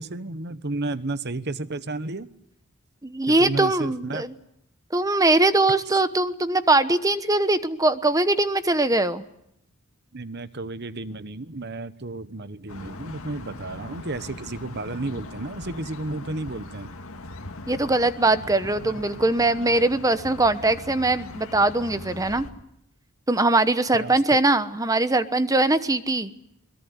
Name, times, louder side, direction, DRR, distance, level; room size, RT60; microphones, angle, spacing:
voice 1, 0.0-2.3 3.3-4.2 10.1-16.9 18.8-18.9 23.9-24.4, right 2 dB, 50° right, 13 dB, 1.1 m, -32 dB
voice 2, 3.0-4.3 4.9-9.2 17.7-22.5 23.3-26.3, right 2 dB, 15° right, 12 dB, 1.0 m, -21 dB
sound 1, 12.7-22.5, left 2 dB, 80° left, 2.0 m, -40 dB
22.5 x 22.0 x 9.4 m, 0.79 s
head